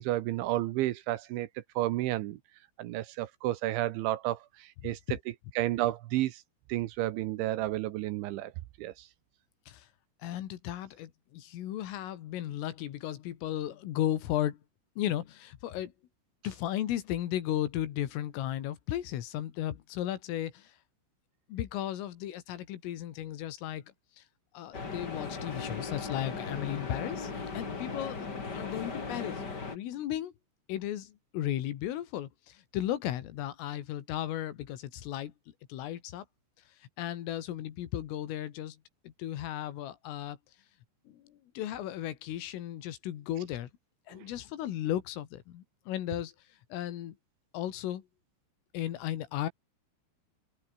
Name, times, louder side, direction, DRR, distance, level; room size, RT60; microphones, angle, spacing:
voice 1, 0.0-2.4 2.8-5.0 5.6-6.4 6.7-8.5 8.8-9.1, right 15 dB, 75° right, 3.1 m, -31 dB
voice 2, 10.2-14.6 15.0-15.9 16.4-20.8 21.5-24.2 24.5-29.4 29.7-30.3 30.7-35.3 35.7-36.3 36.8-38.8 39.0-40.4 41.1-43.7 44.1-46.3 46.7-47.2 47.5-48.1 48.7-49.5, left 12 dB, 75° left, 4.5 m, -35 dB
sound 1, 24.7-29.7, left 4 dB, 25° left, 2.6 m, -37 dB
open air
omnidirectional pair, 6.0 m